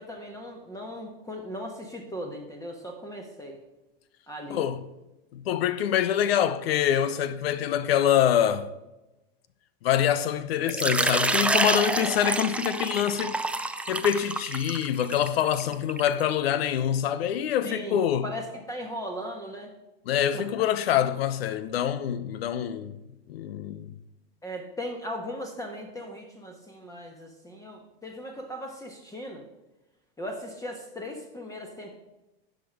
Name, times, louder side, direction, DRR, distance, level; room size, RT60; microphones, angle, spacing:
voice 1, 0.0-3.6 4.3-4.6 17.6-19.7 20.3-20.5 24.4-29.4 30.2-32.0, equal, 10° left, 1.3 m, -38 dB
voice 2, 4.5-4.8 5.3-8.7 9.8-13.4 13.9-18.3 20.1-22.9 23.3-23.9, left 10 dB, 85° left, 0.8 m, -25 dB
Water / Liquid, 10.7-16.2, right 2 dB, 5° right, 0.4 m, -28 dB
10.0 x 5.2 x 6.2 m
hypercardioid pair, 110°, 30 cm